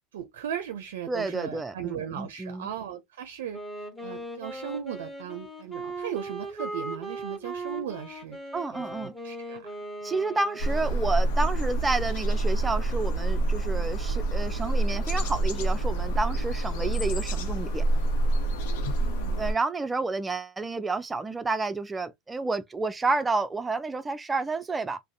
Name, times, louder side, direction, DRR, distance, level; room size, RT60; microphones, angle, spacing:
voice 1, 0.1-3.6 4.0-8.4 8.8-9.6 19.0-19.4, right 9 dB, 85° right, 0.4 m, -37 dB
voice 2, 1.1-2.7 8.5-9.1 10.0-17.8 19.4-25.0, right 3 dB, 15° right, 0.4 m, -30 dB
Wind instrument woodwind instrument, 3.5-11.1, right 2 dB, 10° left, 1.4 m, -38 dB
sound 1, 10.6-19.5, right 2 dB, 75° left, 0.7 m, -27 dB
2.4 x 2.0 x 2.6 m
supercardioid pair, 105°, 0 cm